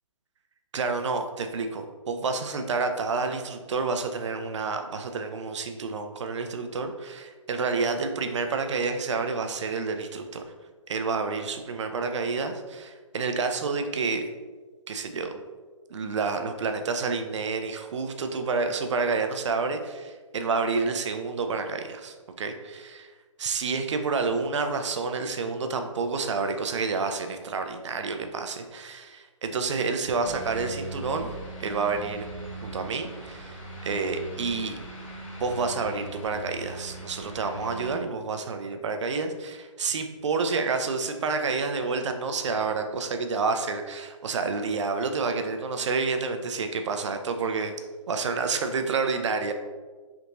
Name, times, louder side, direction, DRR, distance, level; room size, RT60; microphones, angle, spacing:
voice 1, 0.7-10.4 10.9-14.2 14.9-15.4 15.9-23.1 23.4-31.3 31.6-32.3 32.6-34.8 35.4-47.7 48.1-49.5, right 4 dB, 65° right, 6 dB, 0.4 m, -29 dB
sound 1, 30.2-37.9, right 2 dB, 80° left, 1.1 m, -40 dB
3.4 x 2.5 x 2.9 m, 1.4 s
hypercardioid pair, 160°, 17 cm